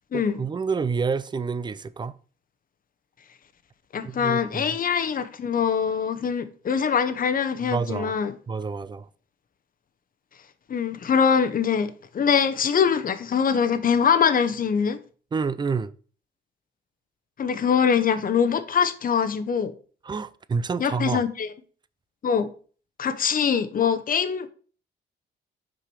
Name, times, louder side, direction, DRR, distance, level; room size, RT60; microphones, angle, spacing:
voice 1, 0.1-2.1 4.0-4.8 7.6-8.1 8.5-9.1 15.3-15.9 20.0-21.2, right 5 dB, 25° right, 0.4 m, -28 dB
voice 2, 3.9-8.3 10.7-15.0 17.4-19.7 20.8-21.5 22.2-22.5 23.0-24.5, left 7 dB, 45° left, 0.9 m, -23 dB
6.1 x 4.9 x 4.7 m
cardioid pair, 90°, 20 cm